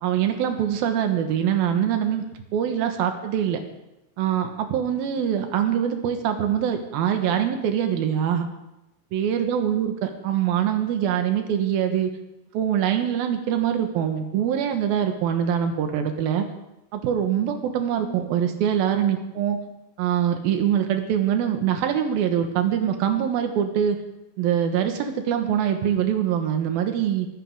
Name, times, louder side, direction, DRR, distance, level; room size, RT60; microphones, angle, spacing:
voice 1, 0.0-2.2 2.5-3.6 4.2-8.5 9.1-12.1 12.5-16.5 16.9-19.6 20.0-24.0 24.4-27.3, right 9 dB, 75° right, 6 dB, 3.1 m, -23 dB
24.0 x 13.0 x 3.7 m, 0.92 s
omnidirectional pair, 4.5 m